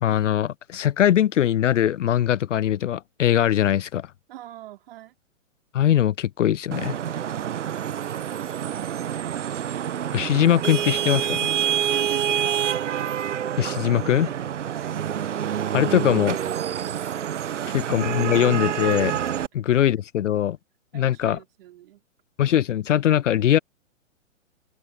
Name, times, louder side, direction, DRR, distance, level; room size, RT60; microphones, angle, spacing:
voice 1, 0.0-4.1 5.7-6.9 10.1-11.5 13.6-14.3 15.7-16.4 17.7-19.2 19.5-20.6 20.9-21.4 22.4-23.6, left 11 dB, 65° left, 0.5 m, -21 dB
voice 2, 4.3-5.2 7.2-8.0 11.8-12.6 14.6-15.0 17.6-17.9 20.9-22.0, right 14 dB, 45° right, 4.5 m, -43 dB
Vehicle horn car horn honking / Traffic noise roadway noise, 6.7-19.5, right 10 dB, 60° right, 0.9 m, -27 dB
open air
figure-of-eight pair, 120°, 40 cm